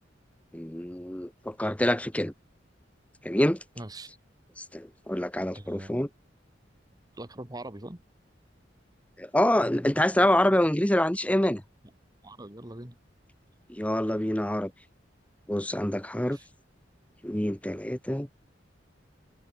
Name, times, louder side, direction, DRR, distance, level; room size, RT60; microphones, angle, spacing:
voice 1, 0.5-2.3 3.2-3.6 4.6-6.1 9.2-11.6 13.7-14.7 15.5-16.4 17.2-18.3, left 1 dB, 10° left, 1.2 m, -26 dB
voice 2, 3.8-4.1 5.5-6.0 7.2-8.0 12.2-13.0 16.3-16.4, right 1 dB, 20° right, 1.7 m, -42 dB
head